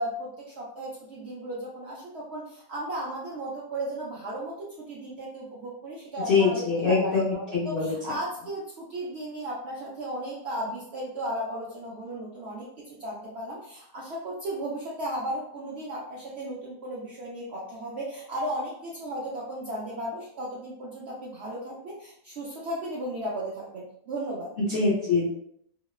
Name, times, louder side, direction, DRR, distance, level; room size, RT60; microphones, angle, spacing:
voice 1, 0.0-24.5, right 1 dB, 70° right, -5 dB, 0.6 m, -35 dB
voice 2, 6.3-7.9 24.6-25.3, left 4 dB, 70° left, -6 dB, 0.5 m, -24 dB
2.9 x 2.0 x 2.3 m, 0.70 s
omnidirectional pair, 1.6 m